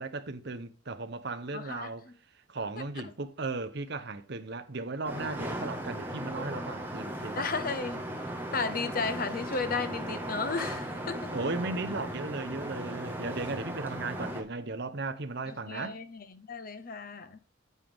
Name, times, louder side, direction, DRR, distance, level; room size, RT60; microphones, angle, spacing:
voice 1, 0.0-2.1 2.5-7.5 11.3-16.0, right 3 dB, 55° right, 0.9 m, -36 dB
voice 2, 1.5-1.9 7.4-8.0 8.5-11.3 15.5-17.4, left 4 dB, 45° left, 0.8 m, -34 dB
sound 1, 5.0-14.4, right 1 dB, 10° right, 1.5 m, -37 dB
9.2 x 7.7 x 3.6 m
head